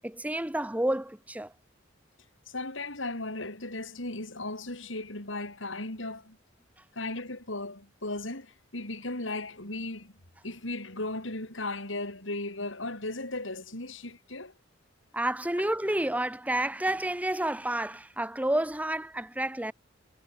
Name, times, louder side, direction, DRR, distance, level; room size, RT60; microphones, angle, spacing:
voice 1, 0.0-1.5 15.1-19.7, right 1 dB, 10° right, 1.0 m, -30 dB
voice 2, 2.5-6.4 6.9-10.1 10.4-14.5, left 2 dB, 75° left, 6.4 m, -36 dB
head